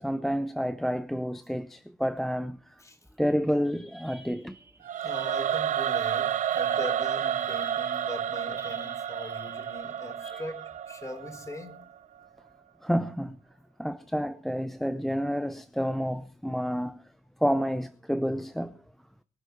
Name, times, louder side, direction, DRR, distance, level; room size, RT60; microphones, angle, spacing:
voice 1, 0.0-2.8 3.2-4.6 10.2-10.4 12.8-13.4 13.8-17.0 17.4-18.7, equal, ahead, 0.6 m, -29 dB
sound 1, 3.3-3.4 3.7-10.1, right 3 dB, 20° right, 3.1 m, -50 dB
Singing / Musical instrument, 4.8-11.9, right 9 dB, 60° right, 0.6 m, -30 dB
voice 2, 5.0-11.8, left 1 dB, 20° left, 4.3 m, -41 dB
23.5 x 8.2 x 4.6 m
cardioid pair, 95°, 15 cm